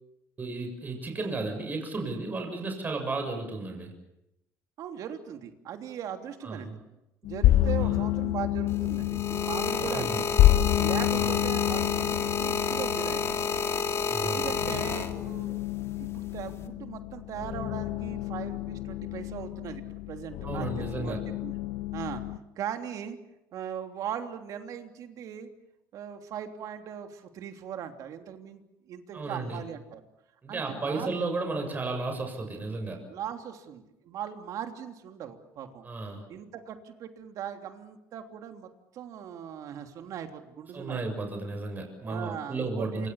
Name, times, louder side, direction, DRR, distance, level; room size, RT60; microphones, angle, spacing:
voice 1, 0.4-4.0 6.4-6.8 7.8-8.0 9.8-10.2 11.1-11.4 14.1-14.5 20.4-21.2 29.1-29.6 30.4-33.1 35.8-36.3 40.7-43.1, right 3 dB, 25° right, 4 dB, 7.0 m, -34 dB
voice 2, 4.8-6.8 7.2-10.3 10.8-13.6 14.2-15.6 15.9-21.5 21.9-22.2 22.6-23.2 23.5-25.5 25.9-28.6 28.9-30.0 30.5-31.1 33.1-35.8 36.3-41.1 42.0-43.1, right 9 dB, 60° right, 6 dB, 3.2 m, -39 dB
sound 1, 7.2-22.4, left 15 dB, 70° left, 1.1 m, -29 dB
sound 2, 8.7-15.5 16.3-16.7, left 5 dB, 45° left, 3.0 m, -30 dB
27.5 x 25.0 x 7.2 m, 0.88 s
cardioid pair, 105°, 7 cm